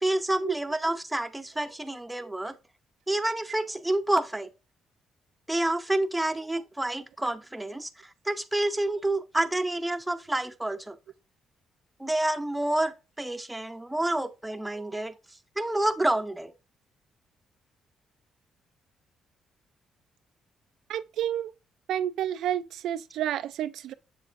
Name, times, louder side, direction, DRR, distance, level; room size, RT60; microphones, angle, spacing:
voice 1, 0.0-2.5 3.1-4.5 5.5-7.9 8.2-11.0 12.0-15.1 15.6-16.5, right 1 dB, 10° right, 0.7 m, -28 dB
voice 2, 20.9-21.5 21.9-23.9, right 11 dB, 80° right, 0.3 m, -30 dB
7.0 x 6.7 x 2.5 m
cardioid pair, 90°, 0 cm